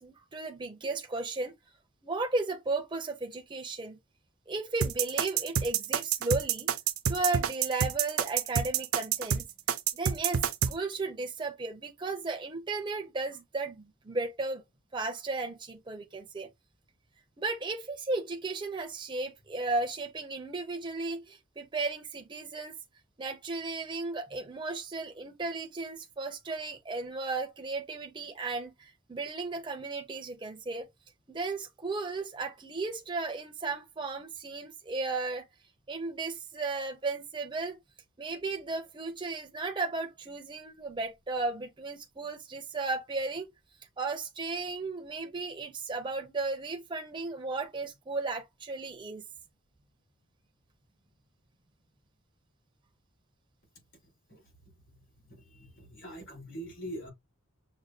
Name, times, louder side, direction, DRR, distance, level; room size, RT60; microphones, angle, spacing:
voice 1, 0.0-1.5 2.0-4.0 4.5-6.7 7.1-9.5 9.9-14.6 14.9-16.5 17.4-22.8 23.2-30.9 31.3-35.4 35.9-37.8 38.2-43.5 44.0-49.2, right 3 dB, 20° right, 0.5 m, -35 dB
sound 1, 4.8-10.7, right 8 dB, 70° right, 0.5 m, -28 dB
voice 2, 54.9-57.1, equal, 65° left, 3.3 m, -44 dB
6.3 x 2.2 x 2.7 m
head